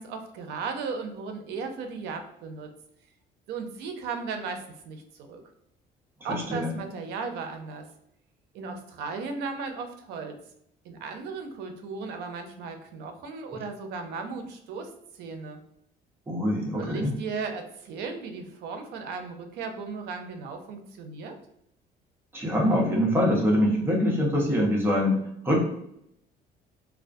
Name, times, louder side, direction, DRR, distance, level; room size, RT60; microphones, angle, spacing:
voice 1, 0.0-2.7 3.5-5.4 6.2-7.9 8.5-10.4 10.8-15.6 16.7-21.4, right 4 dB, 80° right, 6 dB, 0.5 m, -36 dB
voice 2, 6.3-6.7 13.5-13.6 16.3-17.1 22.3-25.2 25.4-25.6, equal, 15° right, -3 dB, 0.8 m, -24 dB
2.3 x 2.2 x 2.5 m, 0.75 s
cardioid pair, 110°, 17 cm